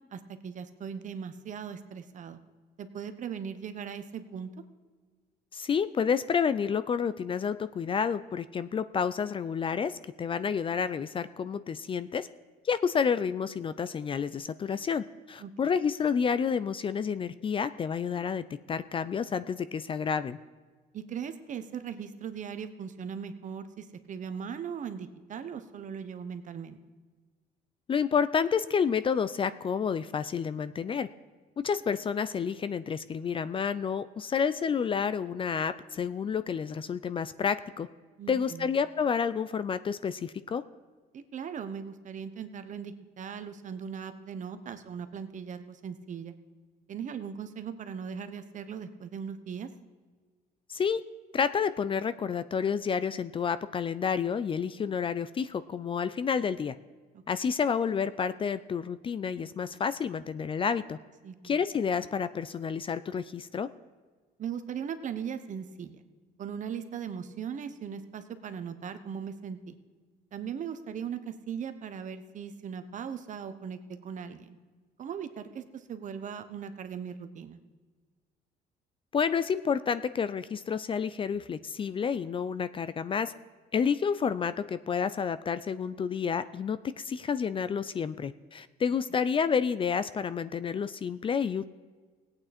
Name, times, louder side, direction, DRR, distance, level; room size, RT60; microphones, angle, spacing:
voice 1, 0.1-2.4 2.8-4.5 15.4-15.5 20.9-26.8 38.2-38.7 41.1-46.3 46.9-49.7 57.1-57.2 61.2-61.6 64.4-66.0 66.4-69.8 70.3-74.6 75.0-77.6, right 7 dB, 50° right, 10 dB, 1.0 m, -39 dB
voice 2, 5.5-12.3 12.6-20.4 27.9-31.1 31.6-37.9 38.3-40.6 50.7-51.0 51.3-56.7 57.3-61.0 61.4-63.7 79.1-83.3 83.7-91.7, left 6 dB, 30° left, 14 dB, 0.4 m, -30 dB
17.5 x 8.9 x 4.3 m, 1.4 s
cardioid pair, 110°, 17 cm